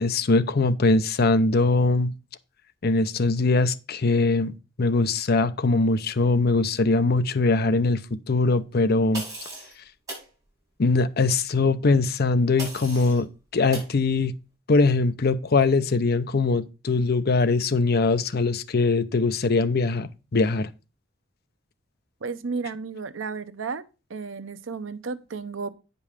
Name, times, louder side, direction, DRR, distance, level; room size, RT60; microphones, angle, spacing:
voice 1, 0.0-2.1 2.8-4.5 4.8-9.2 10.8-14.3 14.7-20.7, left 3 dB, 55° left, 0.6 m, -22 dB
sound 1, 9.1-9.7 10.1-10.3 12.6-13.2 13.7-13.9, right 1 dB, 20° right, 5.3 m, -36 dB
voice 2, 22.2-23.8 24.1-25.7, right 4 dB, 80° right, 0.7 m, -33 dB
9.2 x 5.3 x 5.0 m
head